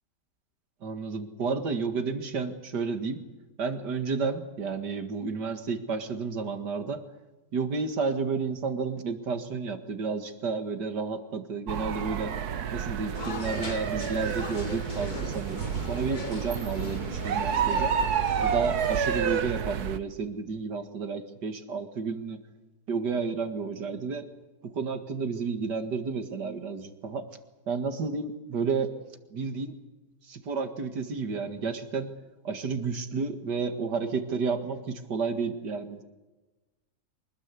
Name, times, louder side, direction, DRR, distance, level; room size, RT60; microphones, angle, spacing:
voice 1, 0.8-3.2 3.6-7.0 7.5-12.4 12.7-17.9 18.4-22.4 22.9-24.2 24.6-27.3 27.7-29.0 29.3-29.8 30.2-32.1 32.4-36.0, right 5 dB, 90° right, 8 dB, 2.5 m, -31 dB
sound 1, 11.7-20.0, right 7 dB, 70° right, 1.5 m, -30 dB
sound 2, 13.1-19.0, left 4 dB, 30° left, 1.2 m, -40 dB
24.5 x 19.5 x 8.3 m, 1.1 s
omnidirectional pair, 1.8 m